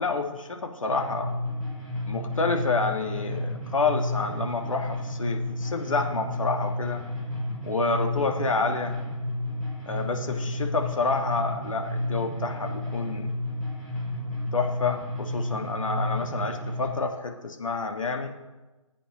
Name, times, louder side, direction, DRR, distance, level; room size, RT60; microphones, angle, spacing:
voice 1, 0.0-1.3 2.1-7.0 7.6-9.0 9.8-13.4 14.5-18.3, left 4 dB, 65° left, 4 dB, 1.7 m, -28 dB
sound 1, 0.9-16.9, left 1 dB, 5° left, 4.3 m, -31 dB
20.5 x 8.7 x 3.0 m, 1.1 s
figure-of-eight pair, 145°, 18 cm